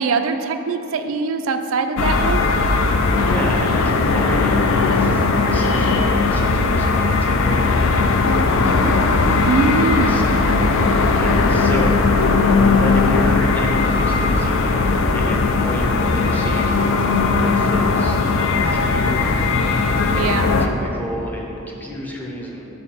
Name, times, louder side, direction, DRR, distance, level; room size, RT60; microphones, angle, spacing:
voice 1, 0.0-2.4 9.4-10.3 20.1-20.6, right 4 dB, 70° right, 7 dB, 0.4 m, -22 dB
sound 1, 2.0-20.7, left 3 dB, 65° left, 0.4 m, -18 dB
voice 2, 3.3-8.9 10.1-10.2 11.0-12.0 12.8-17.0 17.3-18.2 18.5-19.2 20.2-22.7, equal, 10° left, -2 dB, 0.6 m, -31 dB
5.2 x 4.2 x 5.5 m, 2.9 s
head